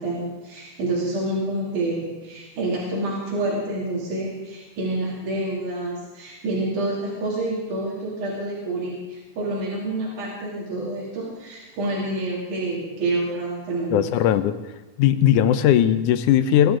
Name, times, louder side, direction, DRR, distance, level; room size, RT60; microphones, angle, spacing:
voice 1, 0.0-14.1, right 2 dB, 90° right, -6 dB, 4.1 m, -28 dB
voice 2, 13.9-14.6 15.0-16.8, left 10 dB, 90° left, 12 dB, 2.2 m, -18 dB
20.5 x 12.5 x 3.8 m, 1.2 s
omnidirectional pair, 3.4 m